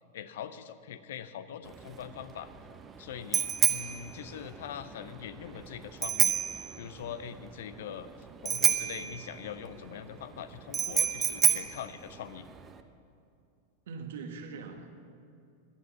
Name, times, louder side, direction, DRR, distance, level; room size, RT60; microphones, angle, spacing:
voice 1, 0.1-2.5 3.0-6.3 6.8-12.5, left 9 dB, 55° left, 13 dB, 0.7 m, -42 dB
Bicycle bell, 1.7-12.8, right 7 dB, 20° right, 0.9 m, -30 dB
voice 2, 13.9-14.9, right 5 dB, 55° right, 6 dB, 1.5 m, -41 dB
17.0 x 11.5 x 6.0 m, 2.5 s
figure-of-eight pair, 90°, 0 cm